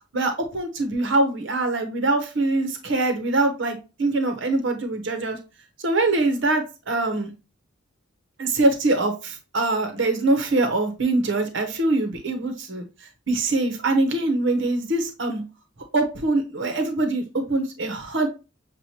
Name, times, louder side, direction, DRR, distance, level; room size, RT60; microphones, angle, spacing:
voice 1, 0.1-5.4 5.8-7.3 8.4-12.8 13.3-15.4 15.9-18.3, right 2 dB, 65° right, 5 dB, 1.0 m, -23 dB
7.1 x 2.5 x 3.0 m, 0.29 s
head